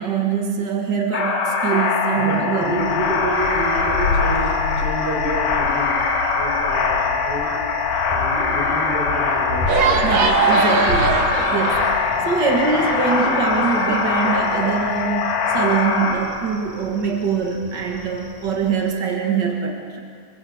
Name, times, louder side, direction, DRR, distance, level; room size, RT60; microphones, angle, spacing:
voice 1, 0.0-2.8 10.0-20.0, right 5 dB, 80° right, 1 dB, 0.9 m, -23 dB
sound 1, 1.1-16.1, left 5 dB, 90° left, 4.5 m, -22 dB
voice 2, 2.1-6.0 6.3-7.6 8.1-9.7, right 1 dB, 15° right, -3 dB, 5.2 m, -29 dB
sound 2, 2.6-18.8, left 3 dB, 55° left, 6.1 m, -31 dB
sound 3, 9.7-14.8, right 5 dB, 60° right, 3.0 m, -23 dB
25.0 x 18.0 x 7.8 m, 2.3 s
omnidirectional pair, 4.7 m